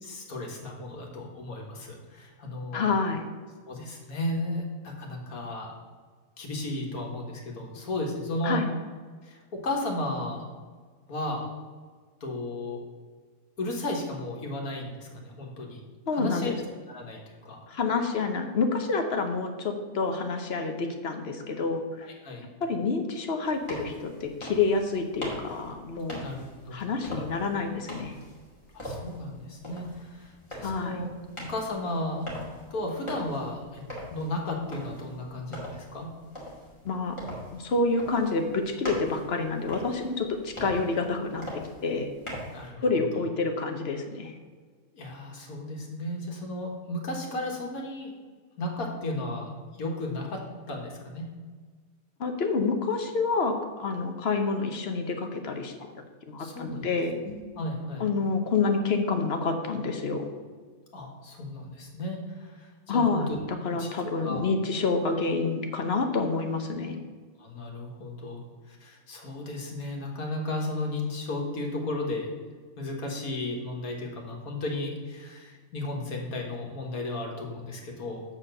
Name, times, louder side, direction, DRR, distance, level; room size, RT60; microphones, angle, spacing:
voice 1, 0.0-2.9 3.7-5.7 6.4-8.6 9.2-10.5 11.1-11.5 12.2-12.8 13.6-15.8 16.1-16.5 16.9-17.6 22.2-22.4 26.2-26.8 28.7-31.1 31.4-32.3 32.7-33.8 34.1-36.1 42.5-42.8 43.1-43.2 44.9-48.1 48.6-51.3 56.4-56.9 57.2-58.1 60.9-63.2 63.6-63.9 64.2-64.4 67.4-68.4 68.7-72.3 72.8-78.2, left 1 dB, 80° left, 0 dB, 1.9 m, -34 dB
voice 2, 2.7-3.2 8.4-8.7 16.1-16.6 17.7-22.1 22.6-26.2 26.7-28.1 30.6-31.0 36.8-37.2 37.5-42.1 42.8-44.3 52.2-55.7 56.3-57.1 58.0-60.3 62.9-63.3 63.6-67.0, left 4 dB, 50° left, 5 dB, 0.9 m, -28 dB
sound 1, 23.4-42.6, left 1 dB, 20° left, 2.2 m, -42 dB
7.5 x 4.3 x 6.5 m, 1.5 s
omnidirectional pair, 1.5 m